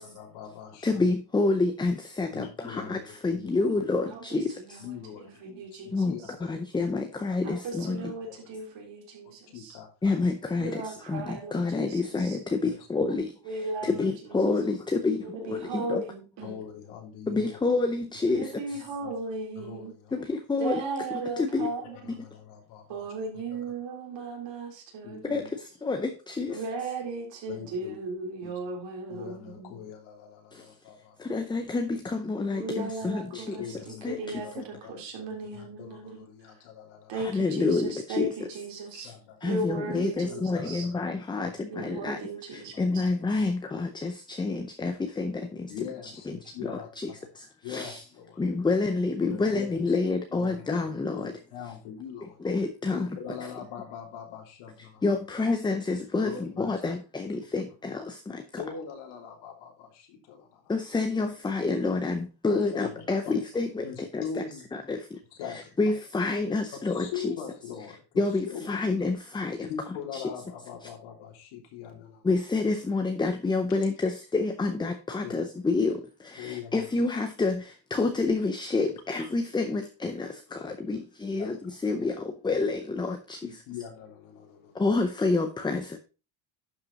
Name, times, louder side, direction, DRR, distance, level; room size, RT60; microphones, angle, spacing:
voice 1, 0.0-1.0 2.3-3.1 3.3-3.5 4.8-6.5 6.9-7.0 7.8-7.9 8.2-8.4 9.5-9.9 10.6-10.7 11.1-11.3 12.6-12.7 13.0-13.1 13.8-14.0 14.4-14.6 15.5-15.6 16.4-17.5 18.2-18.4 19.0-19.1 19.6-20.3 22.0-23.1 25.0-25.5 26.4-26.6 27.5-28.0 28.4-28.5 29.1-31.3 33.0-35.0 35.5-37.2 38.9-39.4 39.9-41.5 41.8-41.9 45.7-47.2 47.6-48.4 48.7-48.8 49.2-50.0 50.3-50.9 51.2-52.4 52.9-55.0 56.2-56.8 58.6-60.7 62.4-63.3 63.8-64.7 65.3-65.8 66.9-68.7 69.7-72.3 75.2-75.3 76.4-76.9 80.6-80.7 81.3-81.5 82.0-82.1 83.4-84.9, left 8 dB, 80° left, 3.3 m, -42 dB
voice 2, 0.8-4.9 5.9-8.1 10.0-16.0 17.3-18.8 20.1-20.8 21.1-21.7 22.2-22.3 25.2-26.6 30.5-30.7 31.2-33.7 34.0-34.4 37.1-38.5 39.0-39.1 39.4-42.2 42.5-45.7 46.0-48.0 48.4-51.3 52.4-53.1 55.0-58.6 60.7-64.4 64.7-65.2 65.5-67.3 68.2-69.7 70.1-70.2 70.8-70.9 72.2-83.5 84.7-86.0, left 3 dB, 10° left, 0.5 m, -28 dB
voice 3, 4.0-6.1 7.4-9.8 10.6-12.4 13.5-14.5 15.2-16.6 18.4-19.9 20.6-22.1 22.9-25.5 26.5-29.8 32.5-36.5 37.1-39.1 39.4-40.9 41.7-43.0, right 3 dB, 60° right, 3.6 m, -37 dB
11.5 x 5.4 x 3.9 m
cardioid pair, 145°, 49 cm